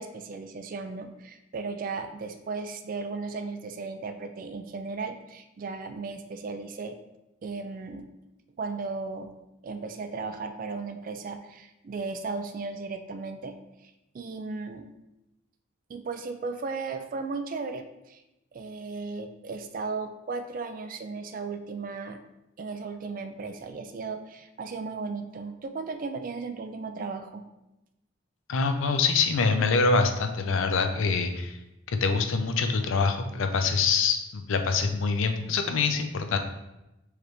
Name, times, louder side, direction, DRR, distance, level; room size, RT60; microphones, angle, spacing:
voice 1, 0.0-7.0 7.4-8.1 8.6-9.3 9.6-13.5 13.8-14.9 15.9-18.2 18.5-22.2 22.6-27.5, right 4 dB, 40° right, 7 dB, 0.3 m, -36 dB
voice 2, 28.5-31.6 32.0-36.4, left 4 dB, 70° left, 7 dB, 0.5 m, -25 dB
4.8 x 3.2 x 3.1 m, 0.94 s
head